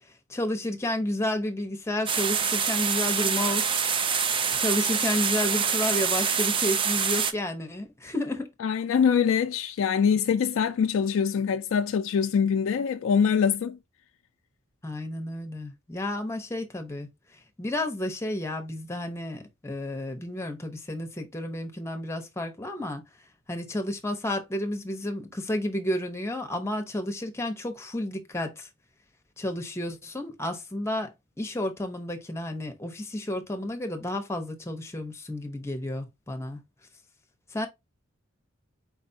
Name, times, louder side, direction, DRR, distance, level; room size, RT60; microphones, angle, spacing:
voice 1, 0.3-3.8 4.6-8.5 14.8-17.1 17.6-23.0 23.5-28.7 29.4-31.1 31.4-36.6 37.5-37.7, left 1 dB, 15° left, 0.8 m, -31 dB
sound 1, 2.1-7.3, right 6 dB, 25° right, 0.4 m, -26 dB
voice 2, 8.6-13.8, left 7 dB, 70° left, 0.3 m, -24 dB
4.7 x 3.3 x 2.7 m
head